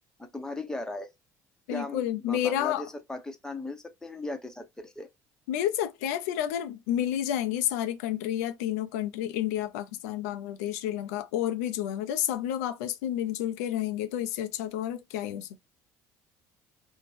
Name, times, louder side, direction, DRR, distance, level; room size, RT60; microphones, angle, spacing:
voice 1, 0.2-1.1 1.7-5.1, left 2 dB, 10° left, 0.7 m, -37 dB
voice 2, 1.7-2.8 5.5-15.7, left 11 dB, 90° left, 0.4 m, -30 dB
2.6 x 2.1 x 3.1 m
supercardioid pair, 75°, 8 cm